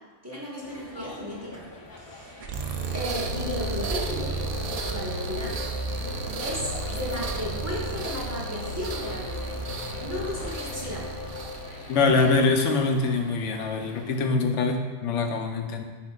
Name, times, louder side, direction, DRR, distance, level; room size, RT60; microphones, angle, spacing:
voice 1, 0.2-1.6 2.0-4.3 4.9-5.6 6.4-9.3 10.0-11.1, left 1 dB, 15° right, -6 dB, 1.2 m, -34 dB
sound 1, 0.6-14.3, left 1 dB, 30° left, 0.4 m, -45 dB
sound 2, 2.4-12.4, right 3 dB, 60° right, 0.4 m, -33 dB
sound 3, 3.0-11.8, left 5 dB, 60° left, 0.8 m, -40 dB
voice 2, 11.9-15.8, left 3 dB, 85° left, 5 dB, 1.0 m, -24 dB
10.5 x 3.8 x 2.4 m, 1.3 s
omnidirectional pair, 1.2 m